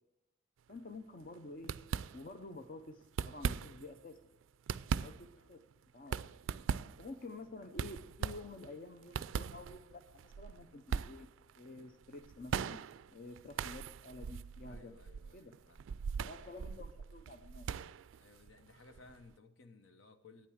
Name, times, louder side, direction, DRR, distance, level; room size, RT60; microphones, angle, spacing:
voice 1, 0.7-1.7 2.1-4.2 5.0-5.6 5.9-6.2 7.0-11.3 11.6-14.9 15.3-15.5 16.2-17.7, left 2 dB, 45° left, 8 dB, 0.7 m, -50 dB
sound 1, 0.7-1.0 1.2-1.3 1.6-2.5 3.0-4.0 4.4-19.3, right 6 dB, 75° right, 0.3 m, -41 dB
voice 2, 14.6-15.9 16.4-16.6 18.2-20.5, left 3 dB, 75° left, 8 dB, 1.0 m, -60 dB
9.0 x 8.8 x 6.3 m, 0.88 s
head